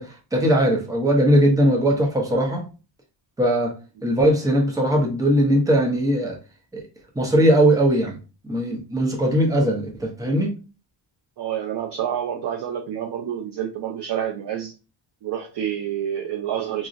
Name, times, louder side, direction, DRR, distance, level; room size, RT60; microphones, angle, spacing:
voice 1, 0.0-2.6 3.4-3.7 4.0-6.4 6.7-6.8 7.2-8.2 8.5-10.5, right 1 dB, 5° right, 1 dB, 0.6 m, -19 dB
voice 2, 11.4-14.7 15.2-16.9, right 9 dB, 55° right, 3 dB, 0.5 m, -28 dB
3.8 x 2.0 x 2.4 m, 0.33 s
wide cardioid pair, 155°, 48 cm